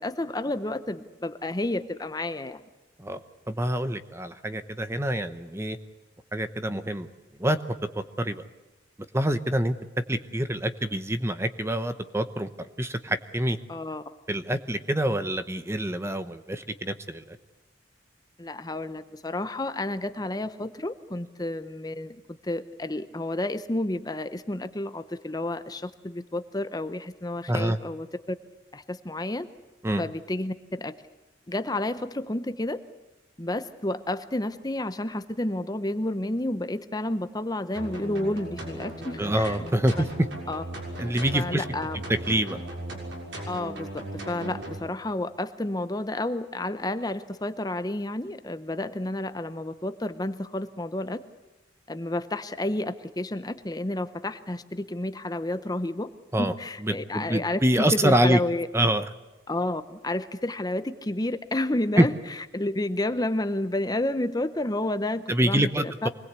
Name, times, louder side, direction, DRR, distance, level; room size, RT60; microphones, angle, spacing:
voice 1, 0.0-2.6 13.7-14.0 18.4-28.4 28.7-29.5 30.0-30.9 31.5-32.8 33.4-39.6 40.5-40.6 41.3-42.0 43.5-51.2 51.9-56.1 56.4-57.6 58.0-58.7 59.5-62.1 62.5-66.1, left 1 dB, 20° left, 11 dB, 0.8 m, -30 dB
voice 2, 3.0-5.8 6.3-7.1 7.4-7.6 7.9-8.4 9.1-9.7 10.1-13.6 14.3-17.4 27.5-27.8 29.8-30.0 39.2-40.3 41.0-41.6 42.3-42.6 56.3-56.5 56.8-58.4 58.7-59.0 62.0-62.1 65.3-66.1, right 1 dB, 15° right, 10 dB, 0.8 m, -26 dB
sound 1, 37.7-44.8, right 1 dB, 70° right, 6.6 m, -37 dB
25.0 x 20.0 x 8.3 m, 1.1 s
head